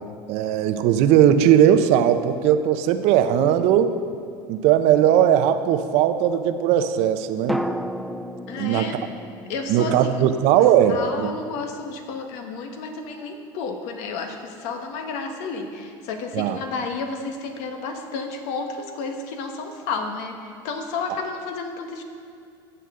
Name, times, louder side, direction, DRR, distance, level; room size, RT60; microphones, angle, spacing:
voice 1, 0.3-4.0 4.5-7.6 8.6-8.9 9.7-11.3 16.3-16.6, right 10 dB, 60° right, 10 dB, 0.7 m, -18 dB
sound 1, 4.2-5.1 7.5-11.5 11.7-11.8, equal, ahead, 0.4 m, -34 dB
voice 2, 8.5-9.0 9.4-10.6 10.9-22.0, left 4 dB, 65° left, 5 dB, 1.3 m, -31 dB
15.5 x 8.1 x 3.8 m, 2.5 s
supercardioid pair, 120°, 12 cm